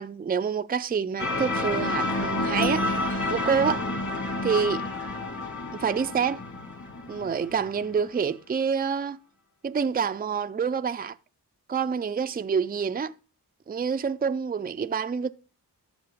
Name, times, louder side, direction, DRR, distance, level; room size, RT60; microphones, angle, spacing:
voice 1, 0.0-2.8 3.3-3.8 4.4-4.8 5.7-6.4 7.1-9.2 9.6-11.1 11.7-13.1 13.7-15.3, right 6 dB, 25° right, 0.4 m, -27 dB
sound 1, 1.2-7.9, left 2 dB, 45° left, 2.4 m, -29 dB
12.0 x 4.4 x 5.3 m
cardioid pair, 45°, 41 cm